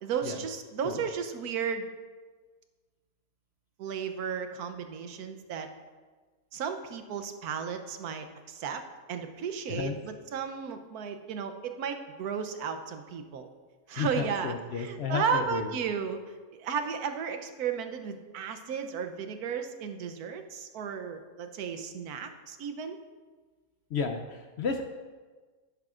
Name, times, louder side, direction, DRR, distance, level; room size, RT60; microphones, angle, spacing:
voice 1, 0.0-1.9 3.8-5.7 6.5-8.8 9.1-13.5 13.9-23.0, right 6 dB, 90° right, 7 dB, 1.3 m, -34 dB
voice 2, 9.7-10.0 14.0-15.7 23.9-24.8, left 5 dB, 65° left, 6 dB, 0.7 m, -32 dB
10.5 x 10.5 x 2.5 m, 1.4 s
omnidirectional pair, 1.6 m